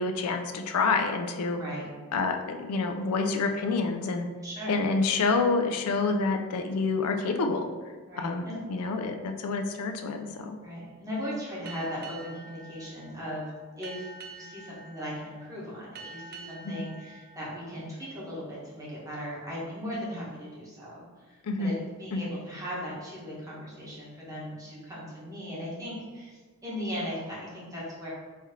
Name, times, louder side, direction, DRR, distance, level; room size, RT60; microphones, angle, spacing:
voice 1, 0.0-1.6 2.1-4.3 4.7-7.7 8.2-8.4 8.7-10.6 16.6-16.7 21.4-21.8 22.1-22.3, left 4 dB, 85° left, 5 dB, 0.4 m, -28 dB
voice 2, 4.4-4.8 8.1-8.6 10.6-13.5 13.8-21.7 22.0-28.1, equal, 15° right, -7 dB, 1.3 m, -38 dB
Boat Water vehicle, 11.7-18.7, right 3 dB, 45° right, 0.4 m, -48 dB
4.3 x 3.1 x 3.7 m, 1.4 s
head